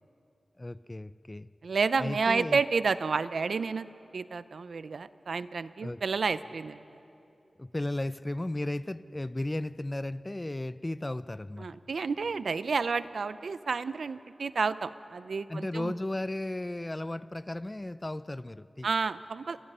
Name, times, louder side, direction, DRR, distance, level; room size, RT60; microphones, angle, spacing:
voice 1, 0.6-1.5 2.0-2.6 5.8-6.0 7.6-11.7 15.5-18.9, left 1 dB, 20° left, 15 dB, 0.5 m, -35 dB
voice 2, 1.6-3.9 4.1-6.8 11.6-15.9 18.8-19.6, right 4 dB, 80° right, 14 dB, 0.6 m, -30 dB
29.5 x 23.5 x 5.5 m, 2.8 s
wide cardioid pair, 75°, 0 cm